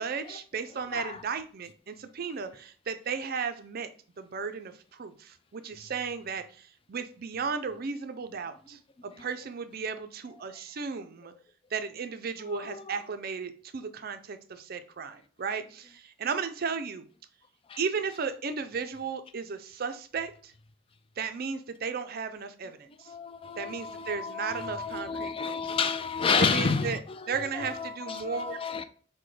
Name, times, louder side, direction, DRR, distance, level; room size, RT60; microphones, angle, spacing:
voice 1, 0.0-3.9 4.2-11.3 11.7-17.0 17.8-20.5 21.2-23.1 23.6-25.7 26.4-27.0 27.3-28.6, right 5 dB, 50° right, 0.5 m, -35 dB
voice 2, 12.5-13.0 17.7-17.8 23.1-28.8, left 5 dB, 30° left, 0.3 m, -31 dB
5.9 x 2.2 x 3.2 m
head